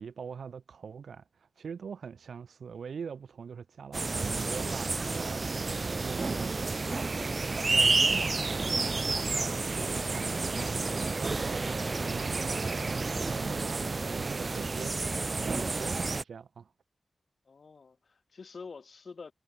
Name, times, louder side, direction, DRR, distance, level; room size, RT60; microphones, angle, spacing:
voice 1, 0.0-7.0 7.5-16.7, right 6 dB, 85° right, 1.8 m, -43 dB
sound 1, 3.9-16.2, right 3 dB, 30° right, 0.3 m, -30 dB
voice 2, 17.4-19.3, left 4 dB, 50° left, 6.8 m, -47 dB
wide cardioid pair, 175°, 0 cm